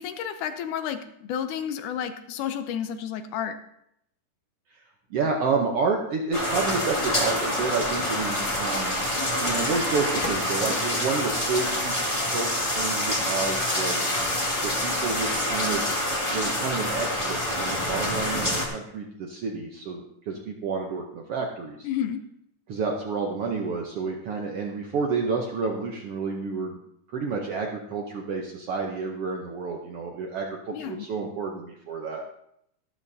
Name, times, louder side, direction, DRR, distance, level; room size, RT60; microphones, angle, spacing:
voice 1, 0.0-3.6 21.8-22.2 30.7-31.1, left 9 dB, 80° left, 9 dB, 2.2 m, -31 dB
voice 2, 5.1-9.0 9.4-14.1 14.6-16.0 16.3-21.9 22.7-26.8 27.1-32.2, right 4 dB, 70° right, 1 dB, 1.4 m, -30 dB
sound 1, 6.3-18.7, left 1 dB, 20° left, 0.8 m, -27 dB
12.5 x 12.0 x 2.7 m, 0.74 s
omnidirectional pair, 3.7 m